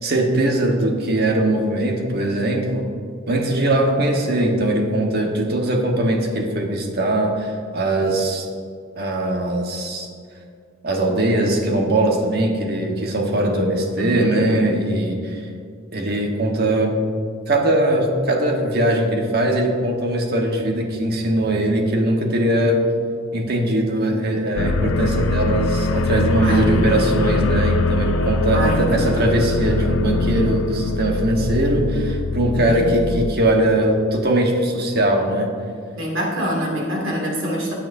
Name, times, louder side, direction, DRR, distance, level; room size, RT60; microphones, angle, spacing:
voice 1, 0.0-2.9 3.3-8.5 9.0-10.1 10.8-15.4 15.9-16.9 17.5-22.8 23.3-35.5, right 1 dB, 50° right, 1 dB, 1.3 m, -20 dB
voice 2, 14.0-14.4 26.4-27.1 28.5-29.0 32.5-33.1 36.0-37.7, equal, 80° right, -2 dB, 2.4 m, -26 dB
sound 1, 24.6-33.3, left 3 dB, 80° left, 0.5 m, -22 dB
15.5 x 8.8 x 2.7 m, 2.3 s
head